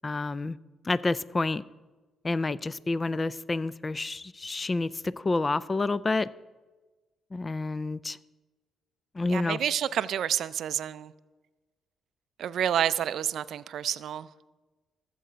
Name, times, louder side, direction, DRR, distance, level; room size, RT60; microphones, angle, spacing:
voice 1, 0.0-0.6 0.8-1.6 2.2-6.3 7.3-8.2 9.1-9.6, left 3 dB, 25° left, 0.3 m, -29 dB
voice 2, 9.3-11.1 12.4-14.3, right 9 dB, 70° right, 0.4 m, -29 dB
14.5 x 7.7 x 5.1 m
cardioid pair, 90°, 0 cm